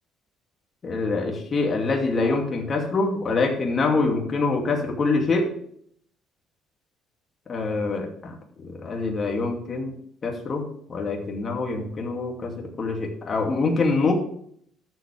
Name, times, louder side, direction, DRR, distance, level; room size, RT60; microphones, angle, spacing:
voice 1, 0.8-5.5 7.5-8.3 8.6-9.9 10.2-10.6 10.9-14.1, left 3 dB, 35° left, 1 dB, 2.6 m, -25 dB
13.5 x 7.5 x 3.5 m, 0.66 s
cardioid pair, 125°, 0 cm